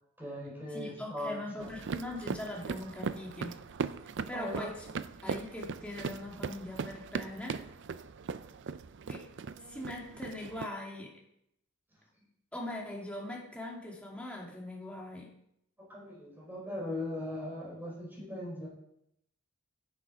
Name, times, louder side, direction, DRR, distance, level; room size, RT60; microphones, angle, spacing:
voice 1, 0.2-1.7 4.3-4.7 15.8-18.7, left 1 dB, 10° right, -4 dB, 4.8 m, -39 dB
voice 2, 0.7-3.6 4.3-4.9 5.2-7.6 9.1-9.2 9.6-11.1 12.5-15.3, left 1 dB, 5° left, -2 dB, 2.5 m, -41 dB
sound 1, 1.6-10.7, right 5 dB, 55° right, 0.4 m, -39 dB
10.5 x 8.5 x 5.0 m, 0.74 s
head